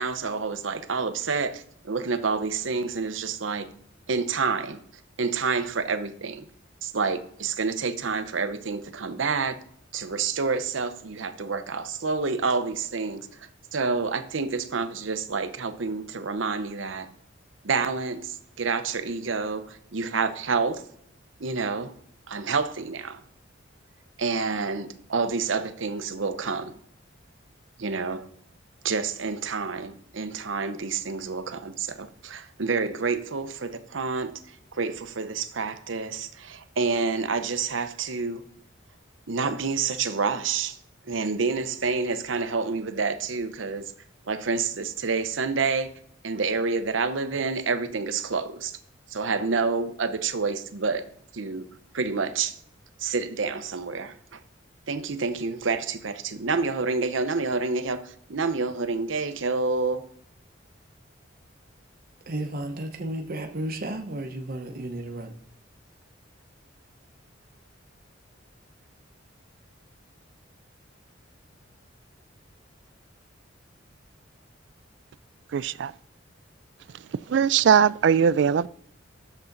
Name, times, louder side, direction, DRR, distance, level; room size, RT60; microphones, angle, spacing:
voice 1, 0.0-3.7 4.1-4.8 5.2-6.5 6.8-9.6 9.9-13.3 13.7-17.1 17.6-20.8 21.4-21.9 22.3-23.2 24.2-26.8 27.8-28.3 28.8-34.3 34.7-38.4 39.3-40.8 41.1-43.9 44.3-45.9 46.2-48.7 49.1-51.0 51.3-51.7 51.9-52.6 53.0-54.4 54.9-60.0, right 4 dB, 80° right, 0.8 m, -28 dB
voice 2, 62.3-65.3, right 1 dB, 50° right, 0.9 m, -33 dB
voice 3, 75.5-75.9 77.3-78.7, right 7 dB, 65° right, 0.3 m, -20 dB
11.0 x 7.1 x 4.0 m
head